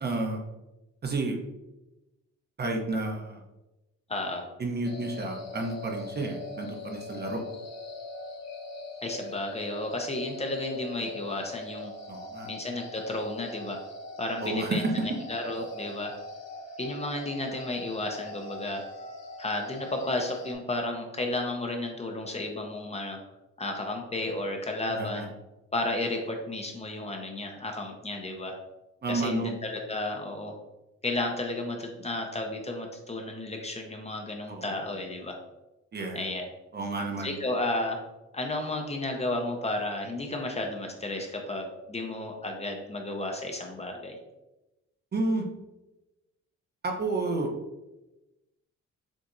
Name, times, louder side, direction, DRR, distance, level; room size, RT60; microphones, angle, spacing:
voice 1, 0.0-0.4 1.0-1.4 2.6-3.4 4.6-7.4 12.1-12.5 14.4-15.1 24.9-25.3 29.0-29.5 34.5-34.7 35.9-36.3 36.7-37.3 45.1-45.4 46.8-47.5, right 2 dB, 35° right, 2 dB, 0.8 m, -30 dB
voice 2, 4.1-4.5 9.0-11.9 12.5-13.8 14.2-16.1 16.8-18.8 19.4-23.2 23.6-25.3 25.7-28.5 29.1-30.5 31.0-35.4 36.1-36.5 37.2-38.0 38.3-44.2, left 2 dB, 20° left, 2 dB, 0.7 m, -33 dB
sound 1, 4.8-20.5, left 2 dB, 60° left, 1.0 m, -42 dB
7.2 x 2.5 x 2.6 m, 0.99 s
cardioid pair, 90°, 30 cm